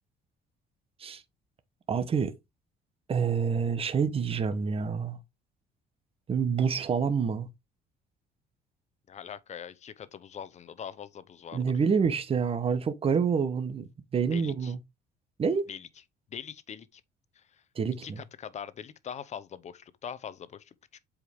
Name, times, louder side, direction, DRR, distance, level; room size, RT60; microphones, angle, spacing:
voice 1, 1.9-2.3 3.1-5.2 6.3-7.5 11.5-14.8 15.4-15.7 17.7-18.2, right 6 dB, 35° right, 1.1 m, -27 dB
voice 2, 9.1-11.6 14.3-14.7 15.7-15.9 16.3-17.0 17.4-17.5 18.0-20.7, left 8 dB, 40° left, 0.8 m, -42 dB
7.9 x 4.9 x 3.6 m
cardioid pair, 110°, 17 cm